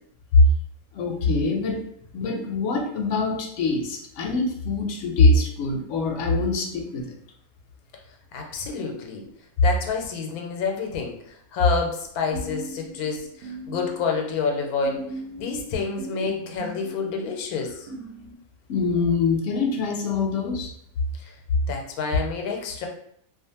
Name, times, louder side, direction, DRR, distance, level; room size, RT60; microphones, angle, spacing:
voice 1, 0.9-1.8 2.1-7.1 18.7-20.7, left 3 dB, 65° left, 1 dB, 0.8 m, -24 dB
voice 2, 8.3-9.2 9.6-15.1 15.4-17.9 21.2-21.3 21.7-22.9, left 5 dB, 90° left, 2 dB, 1.1 m, -28 dB
sound 1, 12.3-14.5 14.8-18.3, right 2 dB, 85° right, 1.1 m, -39 dB
2.4 x 2.4 x 2.8 m, 0.68 s
omnidirectional pair, 1.5 m